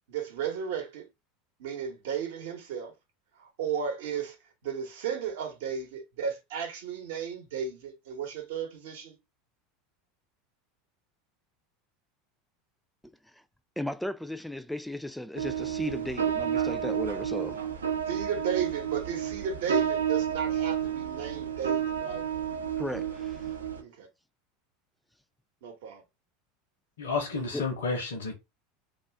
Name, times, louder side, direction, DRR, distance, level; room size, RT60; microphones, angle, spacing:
voice 1, 0.1-1.1 1.6-2.9 3.4-4.4 4.6-9.2 18.1-22.2 23.8-24.1 25.6-26.0, right 7 dB, 65° right, 0.8 m, -34 dB
voice 2, 13.8-17.7 22.8-23.5 27.5-27.7, left 1 dB, 5° left, 0.3 m, -36 dB
sound 1, 15.4-23.8, right 9 dB, 85° right, 0.5 m, -30 dB
voice 3, 27.0-28.3, left 4 dB, 75° left, 0.7 m, -31 dB
2.4 x 2.3 x 3.3 m
hypercardioid pair, 80°, 0 cm